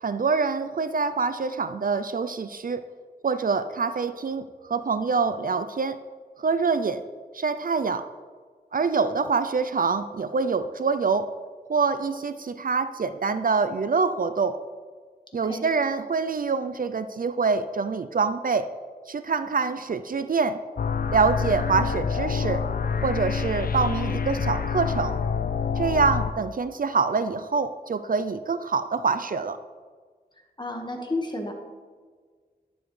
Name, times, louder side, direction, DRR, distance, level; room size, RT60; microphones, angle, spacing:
voice 1, 0.0-2.8 3.2-6.0 6.4-7.0 7.3-8.0 8.7-11.3 11.7-14.6 15.3-18.7 19.1-20.6 21.1-22.6 23.0-25.1 25.8-29.6, right 4 dB, 55° right, 11 dB, 0.4 m, -25 dB
sound 1, 20.8-26.3, left 6 dB, 60° left, 0.4 m, -27 dB
voice 2, 30.6-31.5, left 2 dB, 25° left, 2 dB, 1.5 m, -31 dB
10.5 x 7.1 x 3.2 m, 1.5 s
wide cardioid pair, 55°, 17 cm